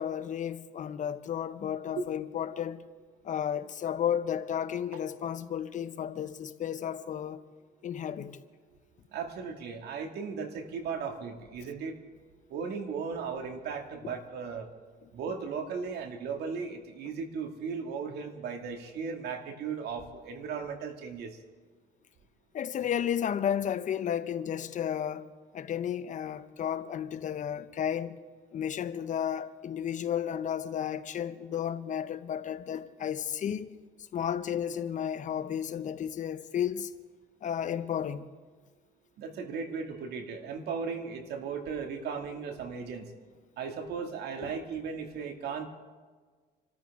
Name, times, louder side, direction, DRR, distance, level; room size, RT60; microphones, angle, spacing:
voice 1, 0.0-2.8 3.2-7.4 7.8-8.4 14.0-14.1 22.5-25.3 25.5-28.2 28.5-33.7 34.1-36.9 37.4-38.3 44.4-44.5, left 9 dB, 50° left, 0.8 m, -33 dB
voice 2, 9.1-12.0 12.5-14.7 15.1-21.4 39.2-43.1 43.6-45.7, right 5 dB, 75° right, 2.3 m, -36 dB
27.0 x 13.5 x 3.7 m
cardioid pair, 110°, 17 cm